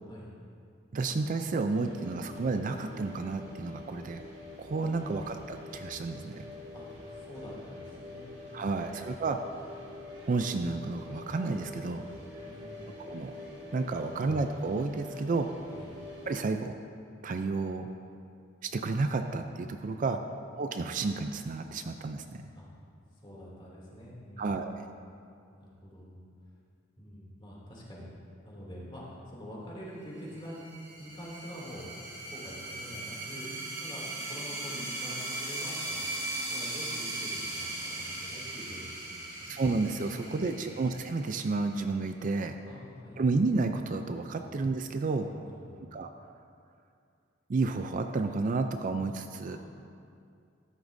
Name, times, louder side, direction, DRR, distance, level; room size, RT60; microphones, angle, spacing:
voice 1, 0.9-4.2 4.6-6.5 8.5-9.4 10.2-12.0 13.0-13.3 13.7-15.5 16.3-16.7 17.2-17.9 18.6-20.2 20.6-22.4 24.4-24.9 39.5-42.5 43.2-45.3 45.9-46.1 47.5-49.6, right 3 dB, 45° right, 7 dB, 0.4 m, -31 dB
sound 1, 1.7-16.4, left 2 dB, 65° right, 2.1 m, -46 dB
voice 2, 7.1-9.2 12.3-12.9 14.0-14.2 15.7-15.9 20.0-20.4 22.5-22.7 23.1-24.8 25.5-26.2 27.0-28.1 28.4-30.6 31.0-31.9 32.3-33.5 33.8-36.1 36.5-37.7 37.9-39.6 40.1-40.7 42.6-43.2 44.4-44.5 45.2-45.8 49.5-49.6, equal, 25° left, -5 dB, 2.7 m, -46 dB
sound 2, 30.4-41.6, right 2 dB, 20° right, 2.3 m, -38 dB
14.0 x 11.5 x 2.6 m, 2.4 s
head